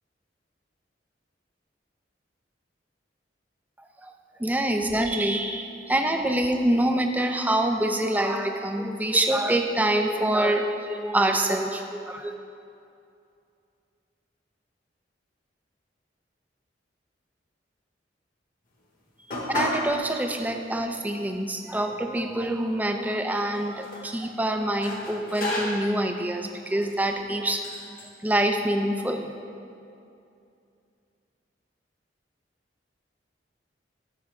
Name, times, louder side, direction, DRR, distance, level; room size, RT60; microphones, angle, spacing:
voice 1, 4.4-12.3 19.5-27.7 28.2-29.3, right 1 dB, 10° right, 5 dB, 0.5 m, -25 dB
sound 1, 19.3-19.9 20.3-20.4 21.2-21.3 21.6-22.6 23.4-24.1 24.8-26.0 26.7-27.0 27.6-28.1, left 1 dB, 50° left, 1.3 m, -33 dB
13.5 x 6.2 x 3.6 m, 2.6 s
head